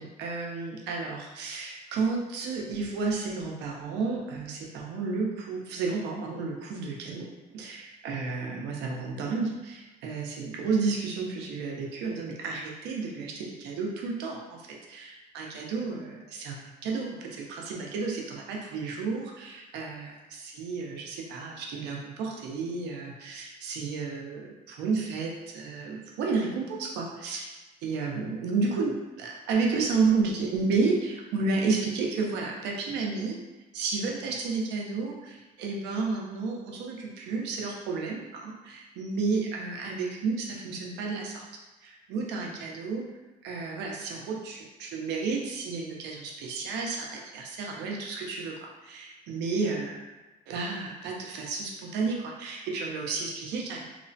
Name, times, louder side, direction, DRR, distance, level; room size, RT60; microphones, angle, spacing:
voice 1, 0.0-7.2 7.5-27.6 27.8-33.4 33.7-41.4 41.8-43.0 43.4-50.0 50.5-53.8, right 4 dB, 85° right, -1 dB, 0.6 m, -32 dB
2.9 x 2.1 x 2.6 m, 1.1 s
cardioid pair, 110°, 17 cm